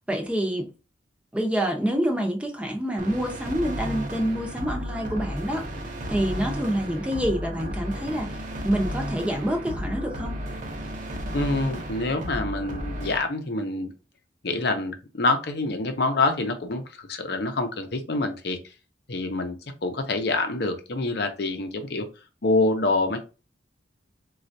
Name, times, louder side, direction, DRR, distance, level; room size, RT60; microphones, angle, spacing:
voice 1, 0.1-0.7 1.3-5.7 6.1-8.3 8.6-10.4, equal, 5° right, 0.6 m, -27 dB
sound 1, 3.0-13.2, equal, 45° right, 0.7 m, -33 dB
voice 2, 11.3-13.9 14.4-18.6 19.1-22.1 22.4-23.2, left 2 dB, 60° left, 0.7 m, -26 dB
4.2 x 2.4 x 2.6 m
head